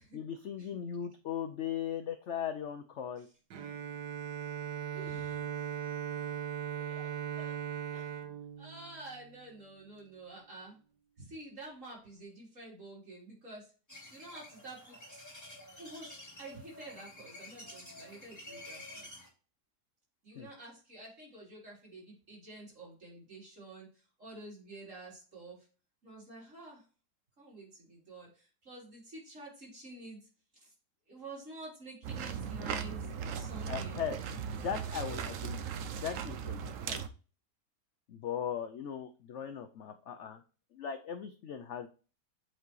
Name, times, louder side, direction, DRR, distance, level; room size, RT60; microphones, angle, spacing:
voice 1, 0.1-3.3 20.4-20.5 33.7-34.2 34.5-36.6 36.9-37.0 38.1-40.4 40.7-41.9, left 8 dB, 65° left, 8 dB, 0.7 m, -38 dB
Bowed string instrument, 3.5-9.5, right 9 dB, 85° right, 1.4 m, -39 dB
voice 2, 4.9-5.4 6.8-7.1 7.4-7.5 7.9-8.2 8.6-10.8 11.2-13.7 14.1-15.3 15.8-19.1 20.2-25.6 26.0-26.8 27.4-30.2 30.5-30.7 31.1-34.1, right 2 dB, 45° right, -4 dB, 4.0 m, -49 dB
sound 1, 13.9-19.3, left 1 dB, 10° left, 2.5 m, -50 dB
sound 2, 32.0-37.1, right 7 dB, 60° right, 0.9 m, -38 dB
8.1 x 4.7 x 3.1 m, 0.36 s
omnidirectional pair, 1.8 m